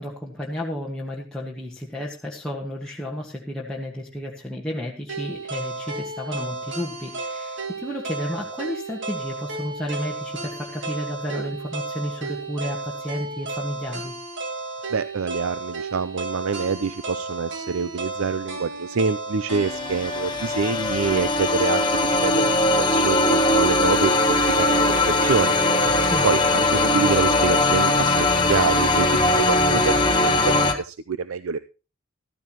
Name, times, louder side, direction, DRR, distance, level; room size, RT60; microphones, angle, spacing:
voice 1, 0.0-14.1 26.0-26.3, equal, 5° left, -4 dB, 1.6 m, -32 dB
sound 1, 5.1-21.2, right 3 dB, 60° right, 2.5 m, -33 dB
voice 2, 14.9-21.8 22.2-25.6 26.2-31.6, right 5 dB, 75° right, 13 dB, 0.5 m, -26 dB
sound 2, 19.5-30.7, left 2 dB, 20° left, 1.3 m, -20 dB
14.5 x 14.0 x 3.0 m, 0.32 s
head